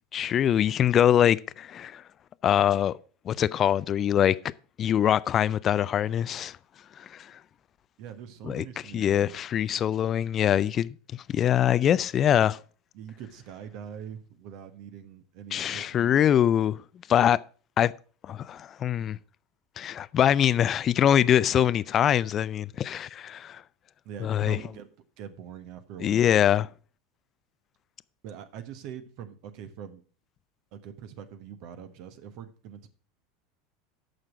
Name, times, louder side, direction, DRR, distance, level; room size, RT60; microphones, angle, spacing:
voice 1, 0.1-2.0 2.4-3.0 3.3-4.4 4.8-6.6 7.0-7.3 8.4-8.6 8.9-10.9 11.3-12.6 15.5-16.8 17.1-17.4 17.8-17.9 18.2-19.2 19.8-23.6 24.2-24.6 26.0-26.7, left 10 dB, 35° left, 0.4 m, -23 dB
voice 2, 8.0-9.4 12.9-16.1 24.0-24.9 25.2-26.3 28.2-30.0 30.7-32.9, right 8 dB, 55° right, 1.2 m, -43 dB
9.1 x 6.6 x 5.9 m
figure-of-eight pair, 80°, 0 cm